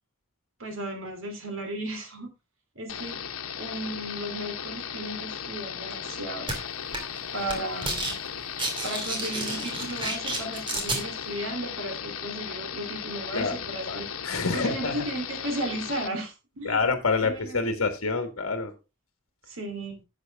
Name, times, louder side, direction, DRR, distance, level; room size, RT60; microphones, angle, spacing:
voice 1, 0.6-2.3 2.7-3.2 3.6-6.5 7.3-8.2 8.8-14.1 14.5-16.9 17.2-17.6 19.5-20.0, right 1 dB, 65° right, 5 dB, 3.1 m, -35 dB
sound 1, 2.9-16.1, left 8 dB, 85° left, 1.1 m, -36 dB
sound 2, 6.5-6.6 6.9-7.2 7.5-8.1 8.4-11.0, right 2 dB, 25° right, 2.5 m, -30 dB
voice 2, 13.9-15.0 16.6-18.7, left 4 dB, 70° left, 8 dB, 1.6 m, -27 dB
11.0 x 7.7 x 3.5 m, 0.27 s
head